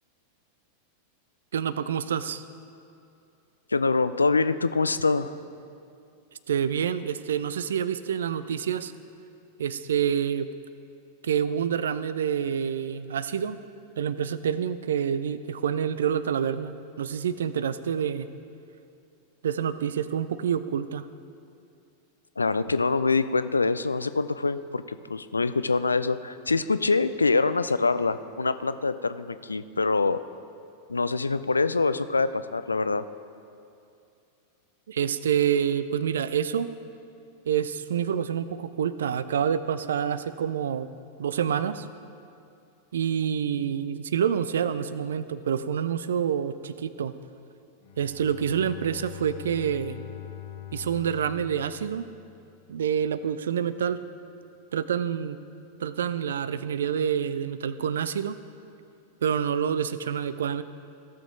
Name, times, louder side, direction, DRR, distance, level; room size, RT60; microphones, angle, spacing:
voice 1, 1.5-2.4 6.5-8.9 9.6-10.5 11.2-13.6 14.0-18.3 19.4-21.1 34.9-36.7 37.5-40.9 41.2-41.9 42.9-47.1 48.0-50.0 50.7-52.1 52.7-54.0 54.7-55.4 55.8-58.4 59.2-60.6, right 8 dB, 65° right, 14 dB, 0.3 m, -27 dB
voice 2, 3.7-5.4 22.4-30.2 30.9-33.0, left 3 dB, 80° left, 13 dB, 0.3 m, -25 dB
Bowed string instrument, 47.8-52.6, left 13 dB, 50° left, 1.0 m, -43 dB
16.0 x 6.8 x 3.8 m, 2.6 s
figure-of-eight pair, 90°, 0 cm